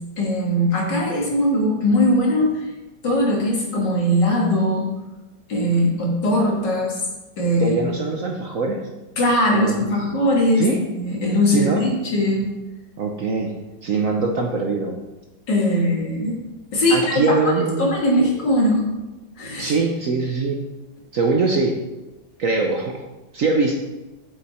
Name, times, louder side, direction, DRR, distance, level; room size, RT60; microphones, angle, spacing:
voice 1, 0.2-2.7 3.0-4.9 5.5-7.0 7.4-7.7 9.2-10.7 10.9-12.5 15.5-16.4 16.7-18.9 19.4-19.7, left 1 dB, 65° left, -3 dB, 2.9 m, -20 dB
voice 2, 7.6-8.8 9.5-9.9 10.6-10.8 11.5-11.8 13.0-13.6 13.8-15.0 16.9-17.9 19.6-20.6 21.1-21.8 22.4-23.0 23.3-23.8, right 3 dB, 55° right, 2 dB, 1.0 m, -22 dB
9.2 x 7.1 x 4.3 m, 1.1 s
omnidirectional pair, 2.1 m